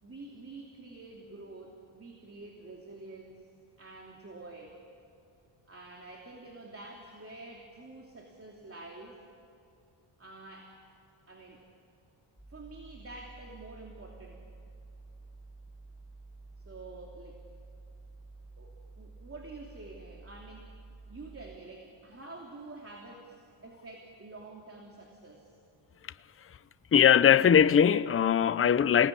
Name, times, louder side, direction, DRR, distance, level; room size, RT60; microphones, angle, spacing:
voice 1, 0.0-3.5 3.8-4.8 5.7-9.2 10.2-10.8 11.3-11.6 12.5-14.4 16.6-17.4 18.6-20.7 21.1-25.5, right 2 dB, 30° right, 2.9 m, -48 dB
sound 1, 12.4-21.6, right 3 dB, ahead, 2.6 m, -51 dB
voice 2, 26.9-29.1, left 8 dB, 30° left, 0.6 m, -21 dB
28.5 x 19.0 x 9.9 m
cardioid pair, 110°, 48 cm